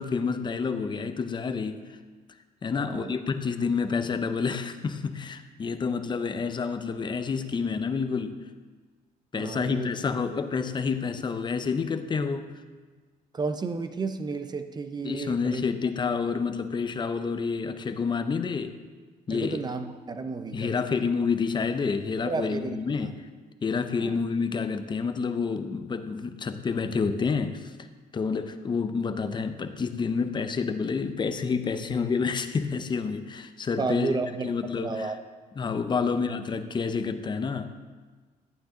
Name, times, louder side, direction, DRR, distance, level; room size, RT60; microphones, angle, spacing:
voice 1, 0.0-2.0 2.6-8.4 9.3-12.5 15.0-18.8 19.3-19.6 20.5-23.2 23.6-27.7 28.1-34.2 34.4-35.1 35.6-37.8, left 5 dB, 25° left, 9 dB, 0.7 m, -29 dB
voice 2, 2.7-3.2 9.3-9.9 13.3-15.6 19.3-21.0 22.2-22.8 24.0-24.2 33.8-34.5 34.8-35.2 36.0-36.1, right 4 dB, 25° right, 9 dB, 0.7 m, -32 dB
12.0 x 8.9 x 3.8 m, 1.4 s
cardioid pair, 110°, 17 cm